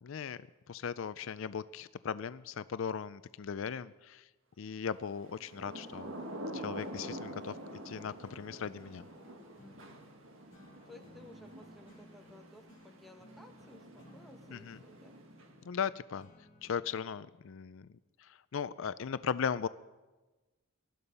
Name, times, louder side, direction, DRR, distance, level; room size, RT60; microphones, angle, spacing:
voice 1, 0.0-0.4 0.7-4.3 4.6-6.1 6.5-7.6 7.8-9.0 14.5-14.8 15.6-16.3 16.6-17.9 18.2-19.7, left 7 dB, 60° left, 15 dB, 0.4 m, -37 dB
Thunder / Rain, 5.3-15.8, right 1 dB, 60° right, 1.9 m, -47 dB
sound 1, 7.0-16.9, equal, 35° left, 4.3 m, -59 dB
voice 2, 10.9-15.2, left 2 dB, ahead, 3 dB, 1.3 m, -56 dB
19.5 x 13.0 x 5.4 m, 1.2 s
head